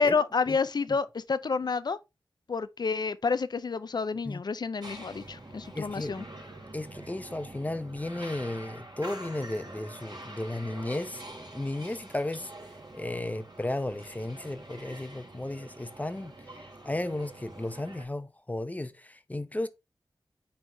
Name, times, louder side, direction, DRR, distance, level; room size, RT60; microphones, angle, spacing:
voice 1, 0.0-2.0 2.5-6.2, left 4 dB, 60° left, 0.5 m, -29 dB
sound 1, 4.8-18.1, right 1 dB, 60° right, 3.1 m, -46 dB
voice 2, 5.7-6.1 6.7-12.5 12.9-16.3 16.8-19.7, left 1 dB, 20° left, 0.7 m, -34 dB
9.4 x 3.5 x 3.4 m
wide cardioid pair, 80°, 8 cm